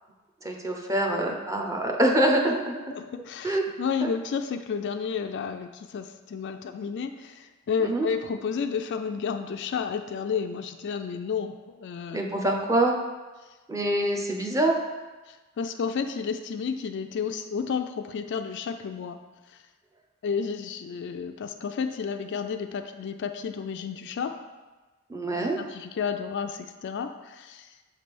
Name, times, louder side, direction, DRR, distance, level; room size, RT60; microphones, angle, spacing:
voice 1, 0.4-2.8 3.4-3.6 4.0-4.1 7.8-8.1 12.1-13.0 13.7-14.7 25.1-25.6, right 1 dB, 15° right, 1 dB, 0.6 m, -25 dB
voice 2, 2.9-12.2 15.3-19.2 20.2-24.4 25.4-27.7, left 6 dB, 55° left, 7 dB, 0.3 m, -31 dB
6.4 x 3.3 x 5.2 m, 1.2 s
head